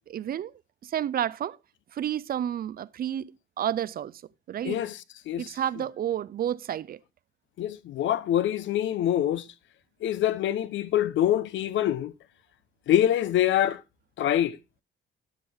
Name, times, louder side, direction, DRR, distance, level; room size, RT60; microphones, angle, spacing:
voice 1, 0.1-0.5 0.8-1.6 1.9-4.2 4.5-4.8 5.4-7.0, right 10 dB, 50° right, 0.4 m, -30 dB
voice 2, 4.6-5.5 7.6-9.5 10.0-12.1 12.9-13.8 14.2-14.6, left 11 dB, 75° left, 0.7 m, -25 dB
12.0 x 6.2 x 3.4 m
cardioid pair, 90°, 20 cm